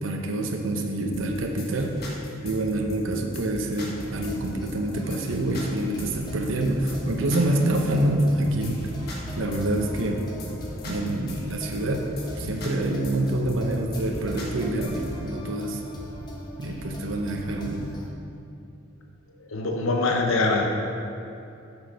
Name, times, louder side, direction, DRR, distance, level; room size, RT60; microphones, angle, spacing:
voice 1, 0.0-8.8 9.1-10.3 10.9-12.1 12.4-15.8 16.6-18.0 19.7-19.8, right 1 dB, 70° right, 2 dB, 0.8 m, -26 dB
sound 1, 1.1-15.1, left 2 dB, 50° left, 1.5 m, -40 dB
sound 2, 4.0-18.1, equal, 20° left, 1.0 m, -40 dB
voice 2, 19.5-20.7, left 3 dB, 80° left, 2 dB, 0.8 m, -23 dB
8.0 x 6.3 x 5.7 m, 2.7 s
head